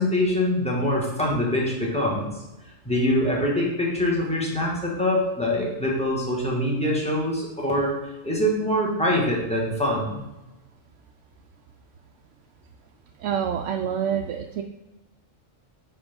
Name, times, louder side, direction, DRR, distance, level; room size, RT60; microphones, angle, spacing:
voice 1, 0.0-2.3 2.8-8.0 8.2-10.2, left 1 dB, 5° left, -3 dB, 1.7 m, -24 dB
voice 2, 13.2-14.6, right 8 dB, 80° right, 3 dB, 0.9 m, -27 dB
9.8 x 4.4 x 3.6 m, 1.0 s
omnidirectional pair, 1.2 m